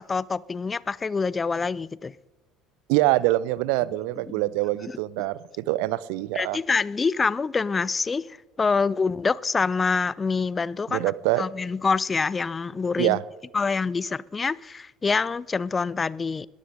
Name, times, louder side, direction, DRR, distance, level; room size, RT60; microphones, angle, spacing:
voice 1, 0.0-2.1 4.3-4.4 4.9-5.0 6.3-8.3 8.6-11.1 11.4-13.2 13.5-16.5, left 4 dB, 25° left, 0.5 m, -26 dB
voice 2, 2.9-6.6 10.9-11.4 13.0-13.2, right 18 dB, 60° right, 0.5 m, -24 dB
21.0 x 14.5 x 3.9 m
figure-of-eight pair, 60°, 0 cm